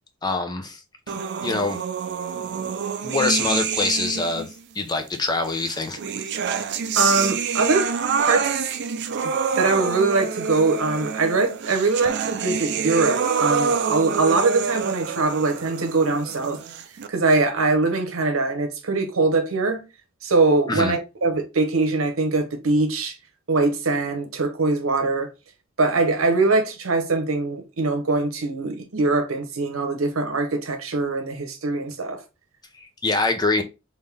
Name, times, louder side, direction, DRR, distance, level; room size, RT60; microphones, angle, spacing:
voice 1, 0.2-0.8 1.4-1.8 3.0-4.5 4.7-6.0 6.5-6.6 20.7-20.9 32.8-33.6, left 3 dB, 20° left, 0.6 m, -24 dB
sound 1, 1.1-4.5 5.5-17.1, right 6 dB, 55° right, 0.4 m, -27 dB
voice 2, 6.9-7.9 8.2-8.7 9.2-16.6 17.1-19.8 20.2-23.1 23.5-25.3 25.8-32.2, right 3 dB, 85° right, 0.9 m, -22 dB
3.7 x 2.6 x 3.3 m
head